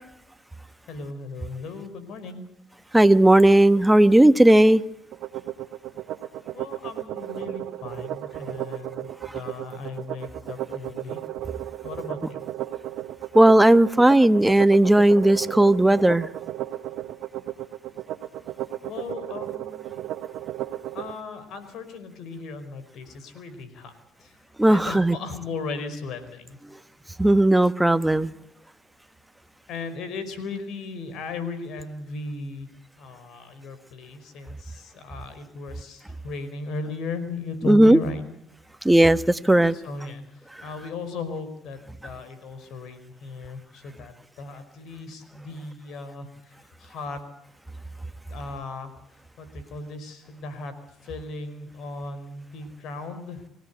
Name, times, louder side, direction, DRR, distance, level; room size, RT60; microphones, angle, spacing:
voice 1, 0.9-2.5 6.5-11.2 11.8-12.4 18.8-19.9 20.9-23.9 24.2-24.4 24.7-26.6 29.7-32.7 33.0-38.2 39.7-40.2 40.6-47.2 48.3-48.9 49.4-50.7 51.0-53.4, left 3 dB, 70° left, 5.0 m, -36 dB
voice 2, 2.9-4.8 13.3-16.3 24.6-25.1 27.2-28.3 37.7-38.0 38.8-39.7, right 1 dB, 10° right, 1.4 m, -16 dB
sound 1, 5.1-21.1, right 13 dB, 70° right, 1.3 m, -34 dB
25.5 x 16.5 x 8.3 m
hypercardioid pair, 60°, 0 cm